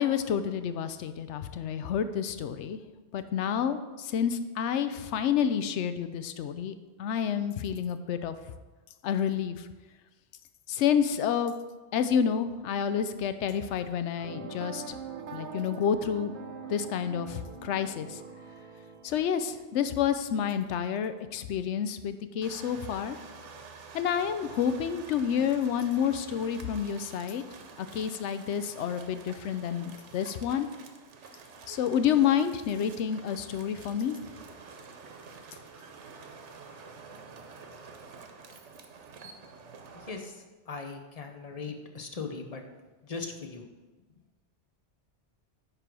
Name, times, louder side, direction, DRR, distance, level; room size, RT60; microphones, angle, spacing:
voice 1, 0.0-2.8 3.1-8.3 9.0-9.7 10.7-11.5 11.9-15.0 15.3-16.3 16.7-18.2 19.0-23.2 23.9-27.4 27.8-30.7 31.7-34.2, left 8 dB, 80° left, 11 dB, 0.9 m, -29 dB
sound 1, 14.2-20.5, right 5 dB, 55° right, 0.7 m, -43 dB
sound 2, 22.4-40.2, right 4 dB, 90° right, 1.1 m, -49 dB
voice 2, 39.9-42.6 43.0-43.7, left 4 dB, 40° left, 5 dB, 0.8 m, -39 dB
9.7 x 3.4 x 6.0 m, 1.2 s
omnidirectional pair, 1.2 m